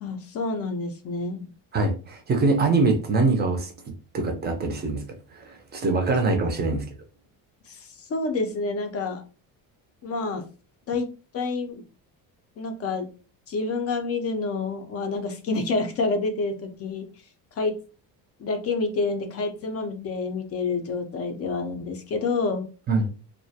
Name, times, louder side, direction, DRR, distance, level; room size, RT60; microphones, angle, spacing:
voice 1, 0.0-1.5 7.7-9.2 10.0-10.5 10.9-11.1 11.3-11.8 12.6-13.1 13.5-17.1 17.6-17.8 18.4-22.7, left 3 dB, 40° left, 6 dB, 0.4 m, -28 dB
voice 2, 1.7-3.7 4.1-5.0 5.3-6.8 22.9-23.1, right 3 dB, 25° right, 5 dB, 0.4 m, -23 dB
2.3 x 2.1 x 2.6 m, 0.35 s
cardioid pair, 150°, 39 cm